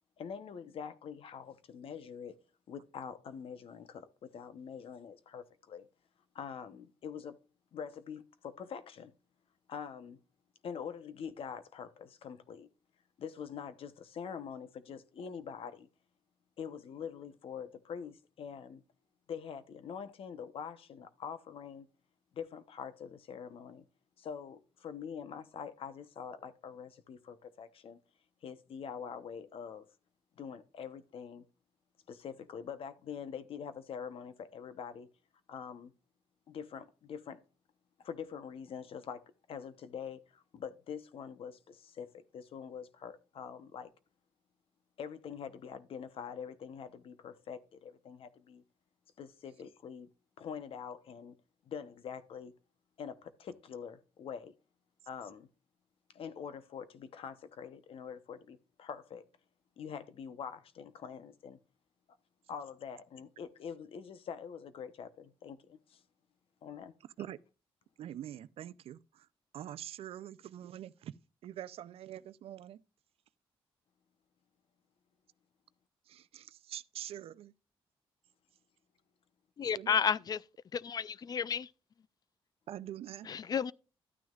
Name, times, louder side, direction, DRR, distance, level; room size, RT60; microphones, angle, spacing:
voice 1, 0.2-2.4 2.7-5.9 6.3-7.4 7.7-9.1 9.7-10.2 10.6-12.7 13.2-15.9 16.6-18.8 19.3-21.9 22.3-23.8 24.2-28.0 28.4-29.9 30.4-31.5 32.1-35.1 35.5-35.9 36.5-37.4 38.0-43.9 45.0-48.6 49.2-50.1 50.4-51.4 51.6-52.5 53.0-54.5 55.1-55.5 56.1-59.2 59.8-61.6 62.5-66.0 66.6-66.9, left 7 dB, 70° left, 0.9 m, -45 dB
voice 2, 68.0-69.3 69.5-71.1 71.4-72.8 76.1-77.5 79.7-80.0 82.7-83.3, right 11 dB, 80° right, 0.5 m, -45 dB
voice 3, 79.6-80.4 80.7-81.7 83.3-83.7, left 7 dB, 40° left, 0.4 m, -32 dB
12.0 x 9.3 x 2.4 m
cardioid pair, 115°, 10 cm